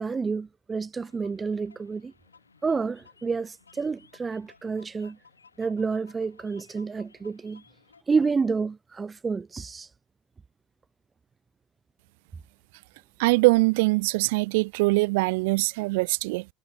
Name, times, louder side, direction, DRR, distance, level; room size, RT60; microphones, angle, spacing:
voice 1, 0.0-2.1 2.6-5.2 5.6-7.6 8.1-9.9, right 4 dB, 25° right, 0.5 m, -29 dB
sound 1, 1.0-8.0, left 5 dB, 85° left, 6.2 m, -58 dB
voice 2, 13.2-16.5, right 25 dB, 65° right, 1.5 m, -22 dB
figure-of-eight pair, 65°, 0 cm